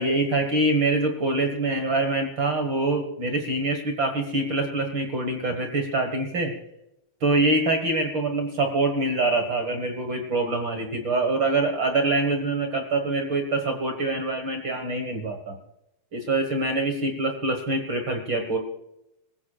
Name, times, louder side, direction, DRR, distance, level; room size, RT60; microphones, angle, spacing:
voice 1, 0.0-6.5 7.2-15.6 16.1-18.6, right 2 dB, 60° right, 4 dB, 1.2 m, -25 dB
24.5 x 15.0 x 2.4 m, 0.83 s
omnidirectional pair, 4.6 m